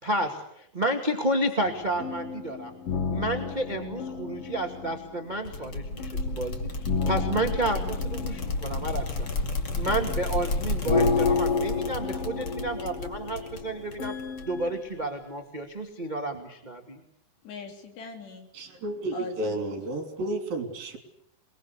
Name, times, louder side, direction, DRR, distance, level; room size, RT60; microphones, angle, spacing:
voice 1, 0.0-2.7 3.1-9.3 9.7-14.1 14.4-17.0, right 1 dB, 20° right, 4 dB, 1.2 m, -31 dB
sound 1, 1.6-14.8, left 5 dB, 55° left, 1.7 m, -32 dB
sound 2, 5.5-14.7, left 2 dB, 35° left, 2.4 m, -32 dB
voice 2, 14.0-15.0 17.4-18.5 19.1-19.8, left 4 dB, 70° left, 5 dB, 5.4 m, -43 dB
voice 3, 18.5-21.0, right 1 dB, 55° right, 7 dB, 5.1 m, -32 dB
28.5 x 21.5 x 8.3 m, 0.74 s
omnidirectional pair, 5.0 m